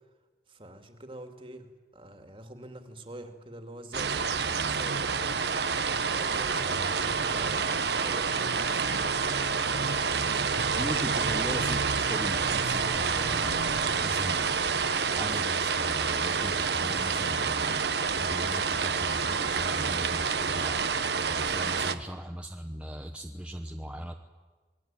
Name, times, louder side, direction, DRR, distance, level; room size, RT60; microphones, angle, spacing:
voice 1, 0.5-5.4 6.0-7.6 8.0-8.8 9.6-10.1 21.7-22.0, right 1 dB, 30° right, 5 dB, 2.5 m, -45 dB
sound 1, 3.9-21.9, right 5 dB, 65° right, 1.2 m, -28 dB
voice 2, 10.8-14.5 15.1-20.8 21.3-24.1, equal, 5° right, 2 dB, 1.1 m, -39 dB
27.0 x 21.0 x 9.1 m, 1.3 s
head